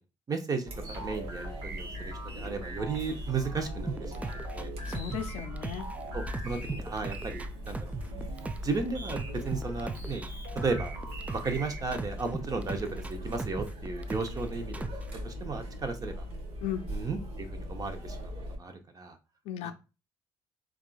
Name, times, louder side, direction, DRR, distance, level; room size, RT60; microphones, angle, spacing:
voice 1, 0.3-4.7 6.1-7.9 8.6-10.2 10.5-11.0 11.3-14.9 15.2-16.3 16.9-19.2 19.6-19.7, right 4 dB, 35° right, 0.7 m, -35 dB
Chatter, 0.7-18.6, equal, 65° right, 1.1 m, -40 dB
sound 1, 0.8-12.0, right 3 dB, 85° right, 1.1 m, -44 dB
sound 2, 3.9-6.0 6.3-8.8 9.1-11.6 11.9-14.4 14.7-15.1, right 3 dB, 15° right, 0.3 m, -37 dB
voice 2, 4.9-5.9 16.6-16.8 19.5-19.7, left 9 dB, 75° left, 0.5 m, -35 dB
3.6 x 2.4 x 2.3 m
supercardioid pair, 65°, 11 cm